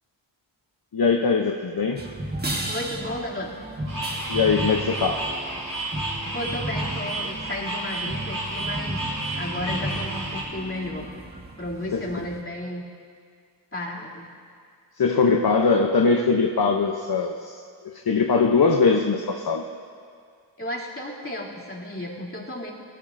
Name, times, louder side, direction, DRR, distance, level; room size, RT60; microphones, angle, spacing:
voice 1, 0.9-2.0 4.3-5.3 11.9-12.0 15.0-19.7, left 4 dB, 55° left, 3 dB, 0.8 m, -21 dB
sound 1, 2.0-12.4, right 1 dB, 20° right, 1.4 m, -34 dB
voice 2, 2.7-3.5 6.3-11.1 11.6-12.8 13.7-14.3 20.6-22.7, left 1 dB, 30° left, -5 dB, 2.7 m, -33 dB
sound 2, 3.9-10.4, right 1 dB, 45° right, 3.6 m, -31 dB
18.0 x 15.5 x 2.6 m, 2.2 s
wide cardioid pair, 45°, 44 cm